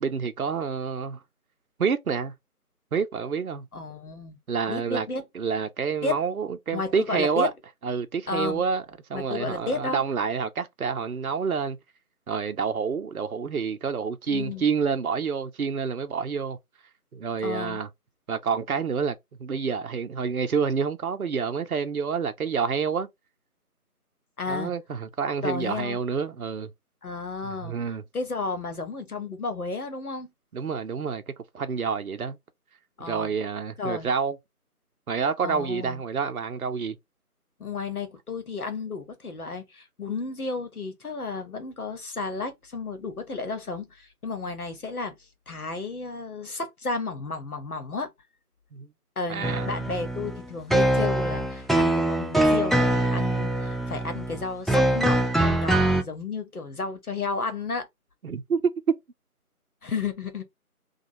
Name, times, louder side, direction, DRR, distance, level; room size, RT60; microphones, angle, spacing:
voice 1, 0.0-1.2 1.8-2.3 2.9-3.6 4.5-5.1 5.3-7.5 7.8-8.8 9.1-11.8 12.3-16.6 17.1-17.9 18.3-23.1 24.5-26.7 27.4-28.0 30.5-31.2 31.5-32.4 33.0-34.4 35.1-37.0 48.7-48.9 49.3-49.7 58.2-58.6, right 6 dB, 65° right, 0.6 m, -28 dB
voice 2, 3.7-4.4 4.7-5.2 6.0-6.2 6.7-7.5 8.3-8.6 9.1-10.0 14.3-14.6 17.4-17.8 24.4-24.7 25.4-26.0 27.0-27.8 28.1-30.3 33.0-33.3 33.8-34.1 35.4-36.0 37.6-45.2 45.5-48.1 49.2-57.9 59.8-60.4, left 4 dB, 70° left, 1.0 m, -32 dB
sound 1, 49.4-56.0, right 1 dB, ahead, 0.3 m, -23 dB
3.0 x 2.3 x 2.6 m
figure-of-eight pair, 165°, 46 cm